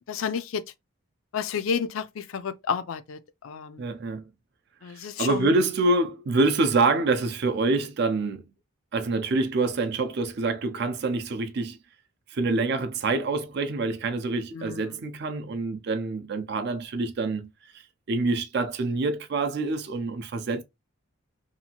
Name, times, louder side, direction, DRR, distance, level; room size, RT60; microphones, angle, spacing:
voice 1, 0.1-0.6 1.3-3.2 3.4-3.8 4.8-5.5 14.5-15.0, left 6 dB, 75° left, 0.4 m, -31 dB
voice 2, 3.8-4.2 4.9-8.4 8.9-11.8 12.3-17.5 18.1-20.6, right 3 dB, 50° right, 0.4 m, -26 dB
2.7 x 2.4 x 2.8 m
head